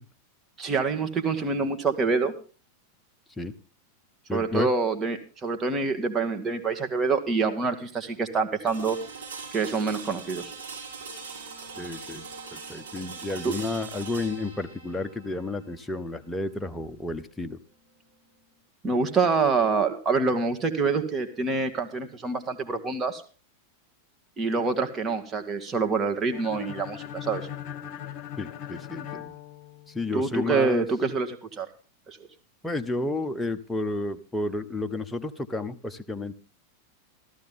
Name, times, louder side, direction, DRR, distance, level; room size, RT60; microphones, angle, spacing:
voice 1, 0.6-2.3 4.3-9.0 9.5-10.4 13.4-13.5 18.8-23.2 24.4-27.5 30.1-31.7 32.1-32.2, right 4 dB, 20° right, 6 dB, 2.0 m, -26 dB
voice 2, 4.3-4.7 11.8-17.6 28.4-29.4 29.9-30.9 32.6-36.3, left 2 dB, 5° left, 7 dB, 1.0 m, -31 dB
sound 1, 8.7-18.6, right 5 dB, 70° right, 6.9 m, -42 dB
sound 2, 26.3-30.2, left 10 dB, 40° left, 1.1 m, -39 dB
15.0 x 14.0 x 3.6 m, 0.38 s
figure-of-eight pair, 90°, 0 cm